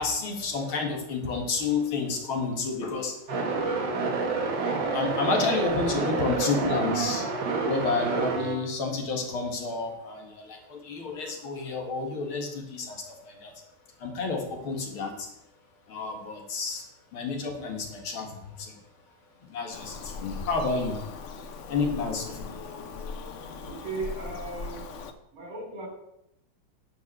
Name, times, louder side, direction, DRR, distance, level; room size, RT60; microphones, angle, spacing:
voice 1, 0.0-3.1 4.9-7.3 7.6-13.6 14.0-15.3 15.9-16.8 17.1-18.8 19.5-21.0 21.7-22.6, left 4 dB, 80° left, 2 dB, 2.7 m, -30 dB
sound 1, 3.3-8.6, right 4 dB, 65° right, 2.1 m, -28 dB
Bird vocalization bird call bird song, 19.7-25.1, left 4 dB, 60° left, 0.8 m, -39 dB
voice 2, 23.6-24.9 25.3-25.9, right 3 dB, 85° right, 1 dB, 4.0 m, -36 dB
10.5 x 5.7 x 6.7 m, 0.84 s
omnidirectional pair, 2.2 m